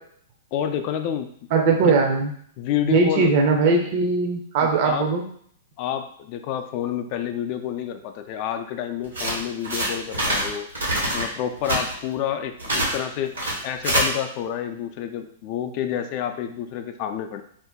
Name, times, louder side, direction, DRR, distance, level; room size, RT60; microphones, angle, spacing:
voice 1, 0.5-1.3 2.6-3.3 4.6-5.1 5.8-10.7 11.1-13.4 13.6-17.4, left 9 dB, 45° left, 7 dB, 0.3 m, -29 dB
voice 2, 1.5-2.3 2.9-5.2, right 4 dB, 50° right, 2 dB, 0.6 m, -20 dB
sound 1, 9.0-10.5 10.7-11.2 11.6-11.9 12.6-13.0 13.3-14.0, right 1 dB, 85° right, 1.2 m, -24 dB
2.5 x 2.1 x 3.5 m, 0.62 s
hypercardioid pair, 110°, 0 cm